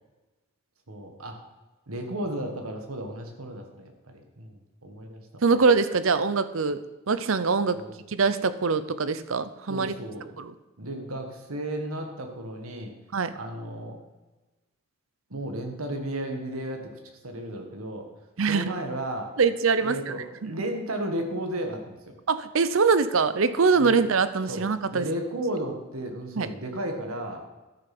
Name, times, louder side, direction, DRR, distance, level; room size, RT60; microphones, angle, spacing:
voice 1, 0.9-1.4 1.9-5.4 7.7-8.0 9.7-10.3 10.8-12.9 13.3-14.0 15.3-16.9 17.2-18.1 18.5-19.3 19.8-22.2 23.8-24.0 24.5-27.4, right 1 dB, 85° right, 4 dB, 1.6 m, -34 dB
voice 2, 5.4-6.8 7.1-7.8 8.1-9.9 10.4-10.5 13.1-13.3 18.4-18.7 19.4-20.1 20.4-20.5 22.3-25.1 26.4-26.5, right 4 dB, 65° right, 13 dB, 0.7 m, -23 dB
13.5 x 6.7 x 6.0 m, 1.1 s
head